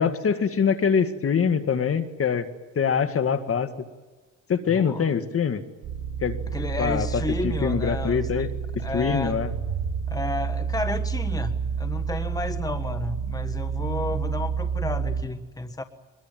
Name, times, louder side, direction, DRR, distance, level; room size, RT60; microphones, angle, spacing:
voice 1, 0.0-2.5 2.8-3.7 4.5-5.6 6.2-6.4 6.8-7.1 7.4-8.5 8.9-9.5, left 6 dB, 50° left, 2.0 m, -24 dB
voice 2, 4.7-5.1 6.5-8.5 8.8-9.4 10.1-15.8, left 2 dB, 10° left, 1.5 m, -32 dB
sound 1, 5.8-15.2, right 6 dB, 75° right, 3.5 m, -29 dB
24.0 x 22.0 x 9.2 m
cardioid pair, 90°, 30 cm